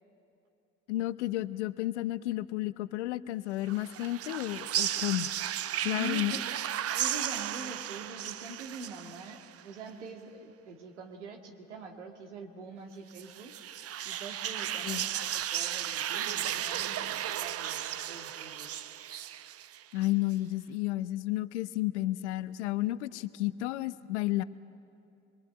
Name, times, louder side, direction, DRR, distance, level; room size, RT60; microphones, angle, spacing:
voice 1, 0.9-5.3 5.8-6.4 14.8-15.0 19.9-24.4, left 16 dB, 80° left, 16 dB, 0.8 m, -32 dB
Ghost Whispers, 3.6-9.6 13.1-20.1, right 11 dB, 45° right, 0.8 m, -35 dB
voice 2, 5.9-6.5 6.9-13.5 14.0-18.7, right 3 dB, 85° right, 4 dB, 2.1 m, -45 dB
25.5 x 22.5 x 8.9 m, 2.6 s
hypercardioid pair, 55°, 34 cm